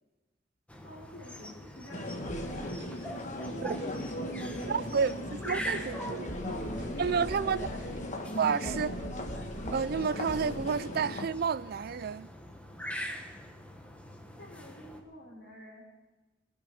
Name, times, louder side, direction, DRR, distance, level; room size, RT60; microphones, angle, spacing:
sound 1, 0.7-15.0, equal, 10° left, 1.4 m, -44 dB
voice 1, 0.8-2.3 7.5-8.2 8.8-9.5 14.4-15.8, equal, 75° left, 3.4 m, -48 dB
sound 2, 1.9-11.3, left 1 dB, 45° left, 1.4 m, -38 dB
sound 3, 2.3-2.9 3.8-3.9 4.8-4.9 5.8-5.9 6.3-7.9 8.6-10.0 10.3-10.6, right 1 dB, 75° right, 1.2 m, -43 dB
voice 2, 4.7-6.3 7.0-7.7 8.4-8.9 9.7-12.3, right 6 dB, 55° right, 0.4 m, -30 dB
22.0 x 8.9 x 5.6 m
head